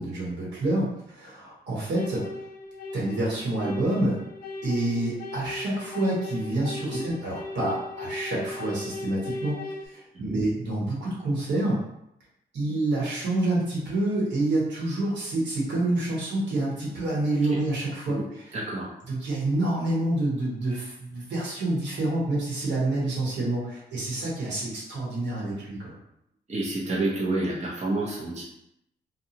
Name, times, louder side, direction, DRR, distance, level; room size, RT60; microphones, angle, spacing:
voice 1, 0.0-2.2 2.9-4.2 4.6-9.6 9.8-11.8 12.5-18.5 19.1-25.9, right 2 dB, 75° right, -5 dB, 1.3 m, -28 dB
sound 1, 1.9-9.9, left 2 dB, 55° left, 0.6 m, -37 dB
voice 2, 18.5-18.9 26.5-28.4, right 2 dB, 40° right, -5 dB, 0.7 m, -29 dB
2.6 x 2.2 x 2.8 m, 0.79 s
cardioid pair, 80°, 18 cm